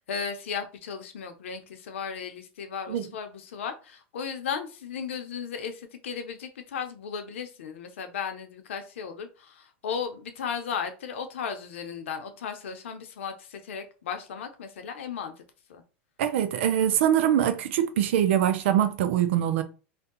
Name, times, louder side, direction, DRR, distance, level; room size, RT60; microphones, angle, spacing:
voice 1, 0.0-15.3 15.7-15.8, left 6 dB, 85° left, 0.7 m, -35 dB
voice 2, 16.2-19.6, right 10 dB, 75° right, 0.5 m, -23 dB
2.7 x 2.2 x 3.7 m
hypercardioid pair, 105°, 7 cm